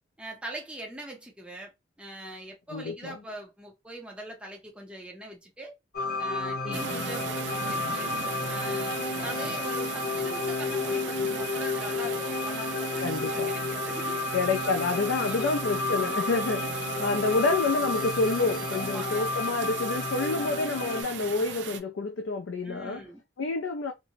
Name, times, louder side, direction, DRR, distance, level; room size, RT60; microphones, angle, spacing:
voice 1, 0.2-1.7 2.0-5.7 6.2-8.1 8.5-14.2 14.6-15.5 16.4-16.7 18.7-19.3 20.3-20.7 22.6-23.2, right 1 dB, 5° right, 0.5 m, -42 dB
voice 2, 2.7-3.2 6.6-7.1 13.0-13.5 14.3-23.0 23.4-23.9, left 3 dB, 80° left, 0.4 m, -28 dB
sound 1, 5.9-21.0, left 3 dB, 50° left, 0.7 m, -31 dB
sound 2, 6.7-21.8, right 7 dB, 70° right, 0.4 m, -38 dB
2.6 x 2.0 x 2.7 m
head